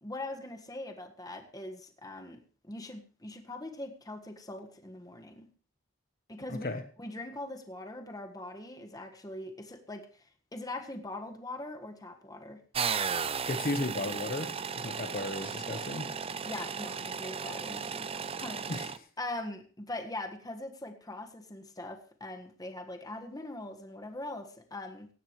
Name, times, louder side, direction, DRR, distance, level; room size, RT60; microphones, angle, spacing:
voice 1, 0.0-5.5 6.3-6.7 7.0-12.6 16.5-18.9 19.2-25.1, left 2 dB, 20° left, 4 dB, 1.6 m, -42 dB
voice 2, 6.5-6.8 13.4-16.1 18.7-18.9, left 2 dB, 50° left, 7 dB, 1.2 m, -35 dB
sound 1, 12.7-19.0, right 6 dB, 30° right, 0.6 m, -35 dB
17.5 x 15.5 x 3.2 m, 0.39 s
head